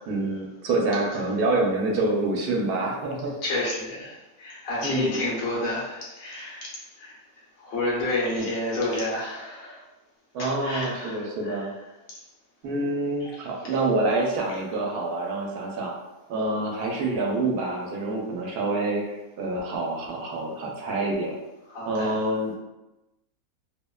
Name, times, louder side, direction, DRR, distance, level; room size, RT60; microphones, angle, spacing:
voice 1, 0.1-3.4 4.8-5.2 10.3-11.7 12.6-15.9 16.3-21.4 21.9-22.6, right 2 dB, 85° right, 0 dB, 1.1 m, -27 dB
voice 2, 3.4-7.2 7.6-9.8 10.4-11.7 13.2-13.4 21.7-22.1, left 2 dB, 65° left, -5 dB, 1.1 m, -30 dB
3.0 x 2.1 x 2.2 m, 1.0 s
omnidirectional pair, 1.6 m